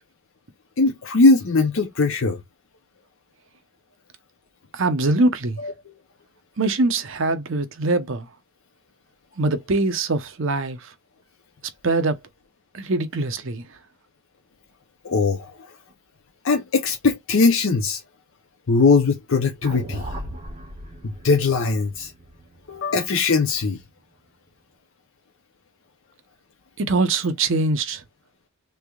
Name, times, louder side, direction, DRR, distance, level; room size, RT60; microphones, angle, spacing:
voice 1, 0.8-2.4 5.6-5.9 15.0-15.7 16.4-18.0 18.7-20.0 21.0-22.1 22.7-23.8, left 4 dB, 60° left, 0.6 m, -20 dB
voice 2, 4.7-5.6 6.6-8.3 9.4-10.9 11.8-12.2 12.7-13.6 26.8-28.0, right 2 dB, 60° right, 0.7 m, -23 dB
sound 1, 19.6-23.9, right 1 dB, 25° right, 1.4 m, -37 dB
3.4 x 3.3 x 2.3 m
head